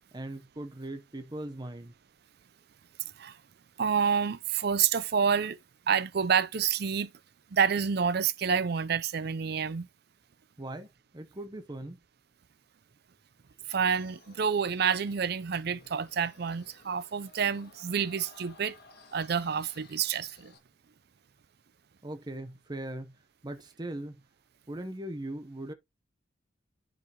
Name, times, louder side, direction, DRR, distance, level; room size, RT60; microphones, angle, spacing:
voice 1, 0.0-1.9 10.6-12.0 22.0-24.2 24.7-25.7, right 1 dB, 20° right, 0.9 m, -40 dB
voice 2, 3.8-5.6 5.9-7.1 7.5-9.9 13.7-18.8 19.1-20.5, right 7 dB, 55° right, 0.5 m, -28 dB
sound 1, 13.8-20.6, left 3 dB, 55° left, 1.7 m, -57 dB
10.5 x 5.0 x 2.9 m
head